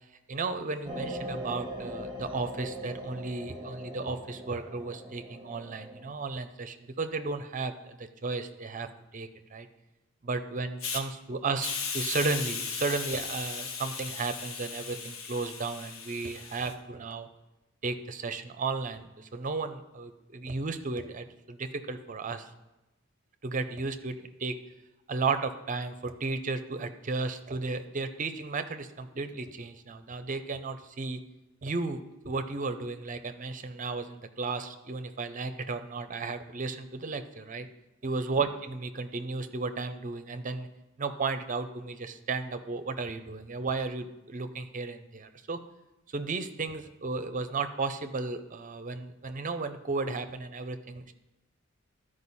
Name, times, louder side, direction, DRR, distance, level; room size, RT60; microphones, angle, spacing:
voice 1, 0.3-8.9 9.1-9.7 10.2-17.3 17.8-22.5 23.4-24.5 25.1-31.2 31.6-32.0 32.2-37.7 38.0-40.7 41.0-45.6 46.1-51.1, right 3 dB, 40° right, 9 dB, 0.6 m, -34 dB
sound 1, 0.8-6.0, equal, 20° right, 1.3 m, -40 dB
Hiss, 10.8-11.0 11.6-16.7, left 5 dB, 75° left, 0.9 m, -37 dB
12.5 x 5.0 x 4.1 m, 1.0 s
head